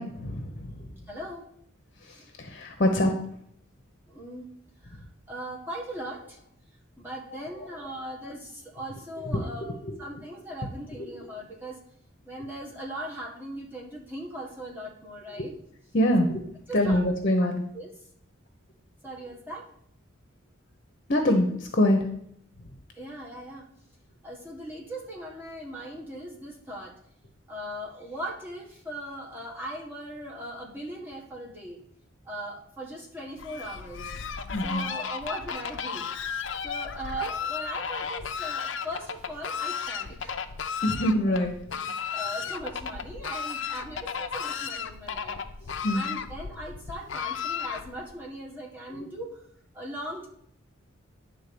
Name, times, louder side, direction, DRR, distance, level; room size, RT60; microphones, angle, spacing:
voice 1, 0.0-1.0 2.0-3.2 7.5-7.7 9.2-10.0 11.0-11.1 15.4-15.5 15.9-16.4 16.7-17.6 21.1-22.1 22.6-22.7 34.5-34.9 40.8-41.6 45.8-46.0 48.9-49.0, left 1 dB, 45° left, 4 dB, 0.9 m, -25 dB
voice 2, 1.1-1.4 2.1-2.3 4.1-4.5 4.8-6.4 7.0-9.7 10.0-11.8 12.2-15.5 16.7-17.0 17.4-17.9 19.0-19.7 23.0-23.7 24.2-26.9 27.5-31.8 32.2-34.0 34.6-36.1 36.6-40.3 41.3-41.4 41.7-45.4 45.6-49.4 49.7-50.3, right 1 dB, 10° right, -3 dB, 1.6 m, -39 dB
Fowl, 33.4-48.1, left 6 dB, 65° left, 0.6 m, -34 dB
10.0 x 3.8 x 6.9 m, 0.72 s
head